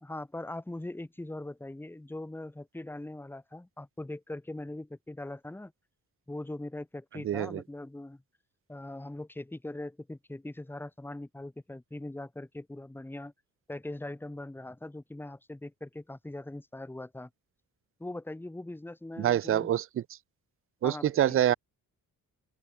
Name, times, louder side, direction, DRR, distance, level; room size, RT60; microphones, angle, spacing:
voice 1, 0.0-5.7 6.3-8.2 8.7-13.3 13.7-17.3 18.0-19.7 20.8-21.4, left 1 dB, 5° left, 1.5 m, -41 dB
voice 2, 7.2-7.6 19.2-19.8 20.8-21.5, right 11 dB, 40° right, 0.5 m, -25 dB
open air
wide cardioid pair, 150°, 33 cm